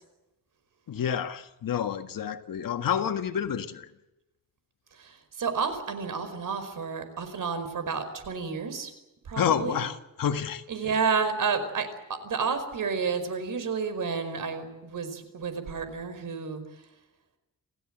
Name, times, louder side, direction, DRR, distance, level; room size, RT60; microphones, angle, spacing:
voice 1, 0.9-3.9 9.4-10.6, left 8 dB, 75° left, 1.8 m, -29 dB
voice 2, 4.9-8.9 9.2-9.8 10.7-16.9, right 5 dB, 65° right, 5.2 m, -31 dB
28.0 x 16.5 x 7.8 m
wide cardioid pair, 125°, 34 cm